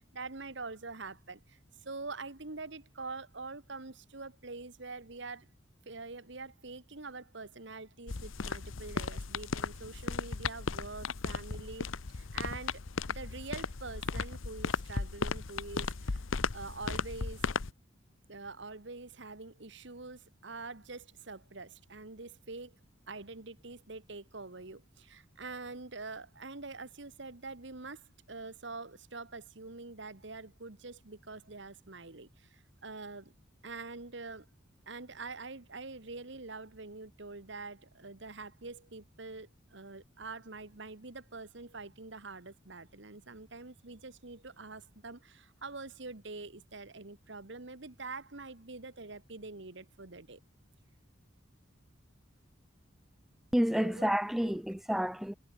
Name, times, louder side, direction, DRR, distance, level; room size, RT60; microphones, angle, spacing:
voice 1, 0.0-5.5 5.9-12.8 13.1-16.2 16.5-17.6 18.3-22.8 23.1-33.3 33.6-34.5 34.9-50.4 53.7-54.1 54.4-54.6, right 3 dB, 65° right, 1.7 m, -45 dB
sound 1, 8.1-17.7, left 4 dB, 90° left, 0.9 m, -36 dB
voice 2, 53.5-55.3, equal, ahead, 0.3 m, -29 dB
head